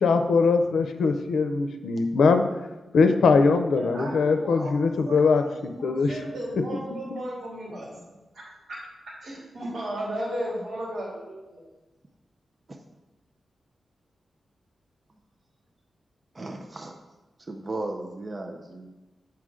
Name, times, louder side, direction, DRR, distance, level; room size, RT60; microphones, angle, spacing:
voice 1, 0.0-2.4 2.9-6.1, left 4 dB, 85° left, 7 dB, 0.6 m, -21 dB
voice 2, 3.8-4.7 5.1-5.4 5.8-8.0 8.3-8.8 9.2-11.6, right 1 dB, 65° right, -6 dB, 2.8 m, -35 dB
voice 3, 16.3-16.9 17.5-18.9, right 2 dB, 30° right, 3 dB, 0.6 m, -35 dB
7.8 x 5.8 x 3.7 m, 1.1 s
wide cardioid pair, 115°, 0 cm